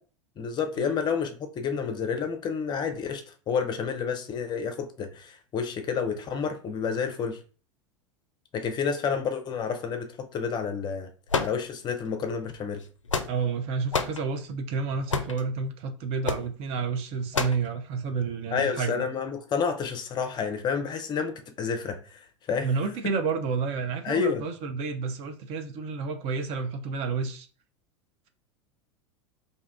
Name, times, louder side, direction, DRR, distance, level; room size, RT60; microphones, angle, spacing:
voice 1, 0.4-7.4 8.5-11.1 11.4-12.8 18.5-22.7 24.0-24.4, left 6 dB, 30° left, 0.5 m, -30 dB
sound 1, 11.3-12.1 12.8-13.6 13.9-14.2 15.1-15.4 16.2-16.5 17.3-17.7, left 4 dB, 85° left, 0.4 m, -28 dB
voice 2, 13.3-19.1 22.6-27.5, right 5 dB, 40° right, 0.5 m, -30 dB
2.6 x 2.3 x 3.5 m
figure-of-eight pair, 85°, 16 cm